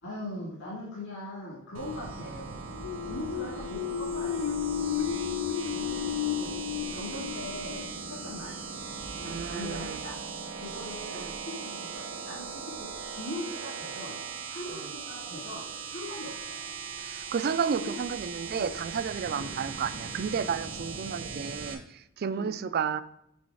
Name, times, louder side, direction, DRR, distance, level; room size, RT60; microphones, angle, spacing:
voice 1, 0.0-2.6 3.0-4.5 5.7-6.6 6.9-7.9 8.2-8.6 9.2-10.2 10.6-12.5 12.8-12.9 13.1-14.2 14.5-15.6 15.9-16.6 17.8-18.0 18.5-18.7 19.3-19.6 22.3-22.5, left 1 dB, 60° left, -6 dB, 2.3 m, -40 dB
sound 1, 1.7-21.7, right 5 dB, 70° right, 1.0 m, -39 dB
sound 2, 2.7-8.3, left 10 dB, 90° left, 0.4 m, -33 dB
voice 2, 9.2-10.0 11.1-11.4 14.7-14.9 17.0-23.0, right 6 dB, 45° right, 14 dB, 0.3 m, -32 dB
6.1 x 4.1 x 4.8 m, 0.76 s
head